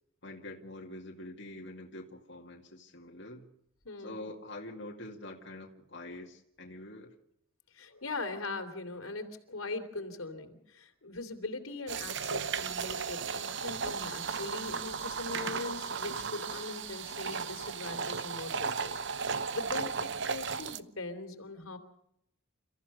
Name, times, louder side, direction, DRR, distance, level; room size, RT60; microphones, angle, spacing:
voice 1, 0.2-3.5 4.0-7.1, left 1 dB, 60° left, 0 dB, 2.3 m, -45 dB
voice 2, 3.8-4.3 7.7-21.8, left 3 dB, 90° left, 6 dB, 3.2 m, -41 dB
sound 1, 11.9-20.8, right 6 dB, 60° right, 0.8 m, -35 dB
29.5 x 15.0 x 6.6 m, 0.77 s
head